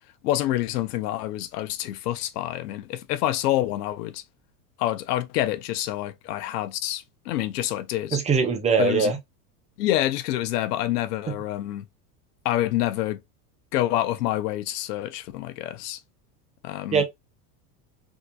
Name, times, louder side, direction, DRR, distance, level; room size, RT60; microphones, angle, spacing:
voice 1, 0.2-4.2 4.8-8.2 8.8-9.1 9.8-11.9 12.4-13.2 13.7-16.0 16.6-17.0, left 14 dB, 80° left, 0.7 m, -27 dB
voice 2, 8.1-9.2 16.9-17.0, right 5 dB, 15° right, 0.4 m, -21 dB
3.6 x 2.7 x 2.2 m
supercardioid pair, 125°, 47 cm